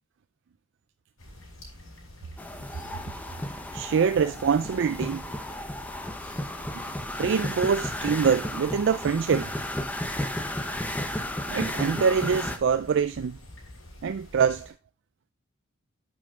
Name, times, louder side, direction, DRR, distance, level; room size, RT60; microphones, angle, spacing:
sound 1, 1.2-14.7, left 1 dB, 75° left, 4.0 m, -47 dB
sound 2, 2.4-12.6, left 1 dB, 5° left, 0.7 m, -33 dB
voice 1, 3.7-5.2 7.2-9.5 11.5-13.4 14.0-14.7, right 6 dB, 60° right, 0.4 m, -24 dB
8.5 x 5.5 x 3.6 m
head